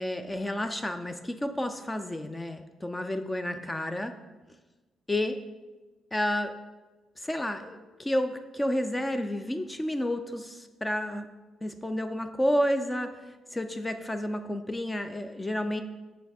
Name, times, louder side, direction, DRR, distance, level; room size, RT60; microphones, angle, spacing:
voice 1, 0.0-4.2 5.1-5.4 6.1-6.5 7.2-11.3 11.6-15.8, left 1 dB, 15° left, 8 dB, 0.3 m, -30 dB
7.3 x 3.4 x 4.1 m, 1.2 s
cardioid pair, 90°, 0 cm